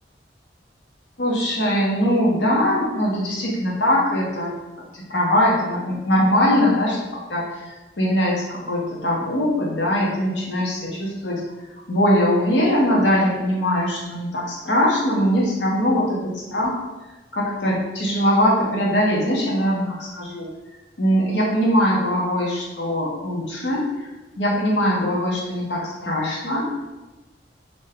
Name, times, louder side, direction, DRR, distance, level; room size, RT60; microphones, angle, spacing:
voice 1, 1.2-4.5 4.9-11.4 11.9-16.8 17.3-20.5 21.0-23.9 24.4-26.7, equal, 90° left, -3 dB, 0.8 m, -21 dB
2.5 x 2.2 x 3.4 m, 1.1 s
head